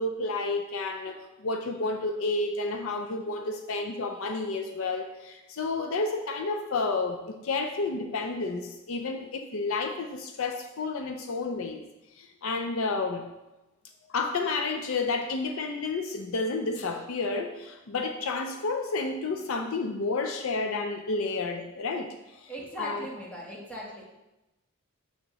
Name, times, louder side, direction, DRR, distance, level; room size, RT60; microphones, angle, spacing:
voice 1, 0.0-11.9 12.2-13.3 14.1-22.1 22.4-22.5 22.8-23.1, left 3 dB, 65° left, 4 dB, 0.5 m, -31 dB
voice 2, 22.5-24.0, equal, 5° left, -4 dB, 1.3 m, -39 dB
7.0 x 6.1 x 3.0 m, 0.98 s
head